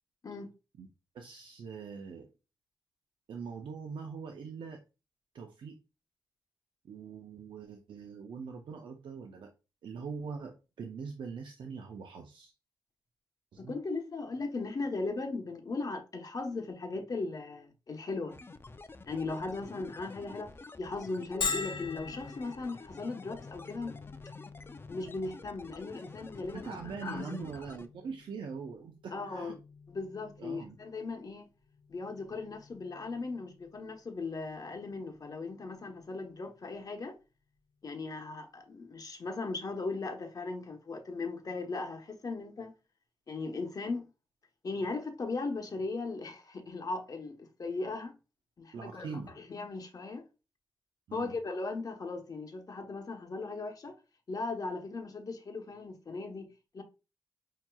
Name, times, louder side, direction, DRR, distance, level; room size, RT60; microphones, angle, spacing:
voice 1, 1.1-2.3 3.3-4.8 5.3-5.8 6.8-9.5 9.8-12.5 13.5-13.7 26.5-29.6 30.4-30.8 48.7-49.3 51.1-51.4, right 5 dB, 75° right, 0.5 m, -42 dB
voice 2, 13.6-18.4 19.1-24.0 24.9-27.4 29.1-29.6 29.9-31.5 31.9-37.2 37.8-42.7 43.3-44.1 44.6-48.2 48.6-50.2 51.1-53.9 54.3-56.8, left 3 dB, 45° left, 1.0 m, -38 dB
sound 1, 18.3-27.9, left 3 dB, 25° left, 0.4 m, -50 dB
Bell, 21.4-36.8, left 4 dB, 70° left, 0.6 m, -45 dB
5.7 x 2.8 x 2.3 m
cardioid pair, 70°, 8 cm